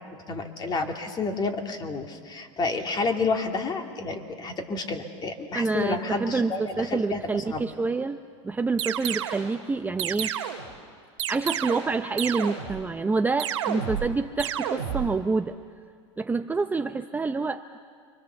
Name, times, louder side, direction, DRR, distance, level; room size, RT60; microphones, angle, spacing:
voice 1, 0.3-7.7, left 3 dB, 25° left, 3 dB, 2.7 m, -30 dB
voice 2, 5.5-8.2 8.4-10.3 11.3-15.6 16.2-17.6, right 4 dB, 10° right, 7 dB, 0.6 m, -27 dB
sound 1, 8.8-9.5 10.0-10.7 11.2-11.9 12.2-12.8 13.4-14.1 14.4-15.1, right 10 dB, 85° right, 2.6 m, -30 dB
29.0 x 24.0 x 7.1 m, 2.2 s
hypercardioid pair, 110°, 16 cm